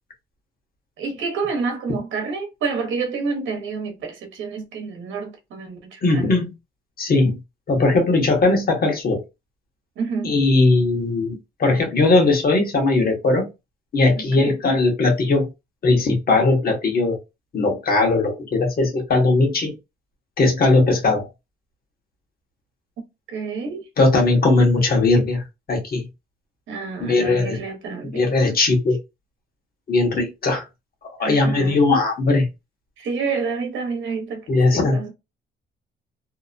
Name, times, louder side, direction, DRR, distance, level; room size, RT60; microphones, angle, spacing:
voice 1, 1.0-6.3 10.0-10.3 14.3-14.6 23.3-23.8 26.7-28.3 31.2-31.8 33.0-34.4 34.7-35.1, right 4 dB, 75° right, 0.9 m, -28 dB
voice 2, 6.0-6.5 7.0-7.4 7.7-9.2 10.2-13.5 13.9-15.5 15.8-17.2 17.5-19.7 20.4-21.3 24.0-25.4 25.7-26.0 27.0-27.6 28.1-29.0 29.9-30.6 31.2-32.5 34.5-35.0, left 3 dB, 50° left, 1.2 m, -19 dB
2.8 x 2.1 x 2.5 m
cardioid pair, 90°, 20 cm